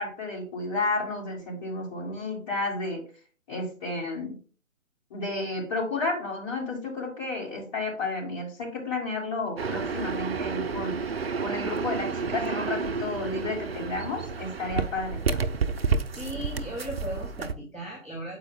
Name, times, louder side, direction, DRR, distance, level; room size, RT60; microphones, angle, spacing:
voice 1, 0.0-3.0 3.5-4.4 5.1-11.0 11.4-15.4, left 3 dB, 25° left, -2 dB, 2.3 m, -32 dB
sound 1, 9.6-17.5, right 5 dB, 50° right, 0.6 m, -30 dB
voice 2, 16.1-18.4, right 1 dB, 5° left, -11 dB, 0.9 m, -37 dB
7.6 x 4.8 x 3.7 m, 0.40 s
figure-of-eight pair, 140°, 41 cm